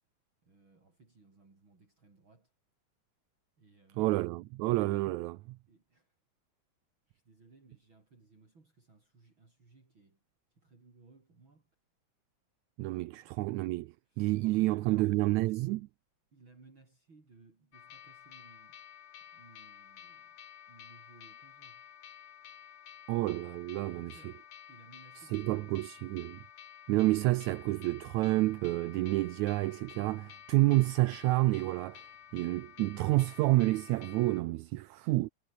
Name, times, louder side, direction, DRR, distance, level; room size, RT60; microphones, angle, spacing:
voice 1, 0.4-2.5 3.6-4.1 5.7-6.2 7.1-10.2 10.5-11.7 13.1-13.4 14.0-15.6 16.3-19.0 19.3-20.4 20.7-21.9 23.8-26.0, right 3 dB, 40° right, 5.6 m, -61 dB
voice 2, 4.0-5.6 12.8-15.8 23.1-24.1 25.3-26.4 26.9-32.1 32.3-35.3, right 19 dB, 80° right, 1.9 m, -29 dB
sound 1, 17.7-34.4, left 9 dB, 90° left, 3.5 m, -52 dB
omnidirectional pair, 3.5 m